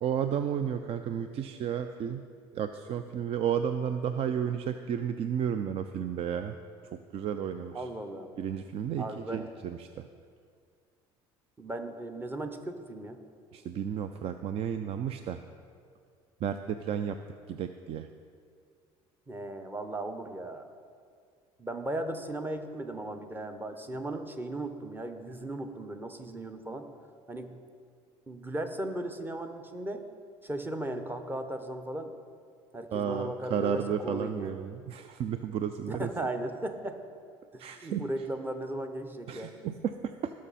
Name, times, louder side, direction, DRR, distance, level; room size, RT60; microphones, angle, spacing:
voice 1, 0.0-2.2 2.5-6.6 6.9-7.9 8.4-10.1 13.5-15.4 16.4-17.2 17.5-18.1 32.9-36.1 37.6-38.0 39.3-40.3, right 8 dB, 50° right, 9 dB, 0.5 m, -32 dB
voice 2, 7.7-8.3 9.0-9.5 11.6-13.2 19.3-20.7 21.6-26.9 27.3-27.6 28.3-30.0 30.4-32.1 32.7-34.6 35.8-37.0 37.5-39.5, right 1 dB, 15° right, 7 dB, 1.1 m, -37 dB
18.0 x 6.3 x 4.2 m, 2.2 s
supercardioid pair, 95°, 12 cm